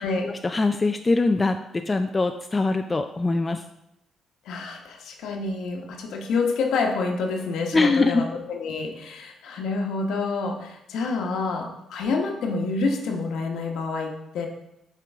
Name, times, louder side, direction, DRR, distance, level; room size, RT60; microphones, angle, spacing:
voice 1, 0.2-1.6 1.9-3.6 7.7-8.2, left 3 dB, 25° left, 6 dB, 0.3 m, -22 dB
voice 2, 4.4-14.5, left 4 dB, 80° left, 2 dB, 1.1 m, -28 dB
7.4 x 4.4 x 3.5 m, 0.84 s
cardioid pair, 90°, 0 cm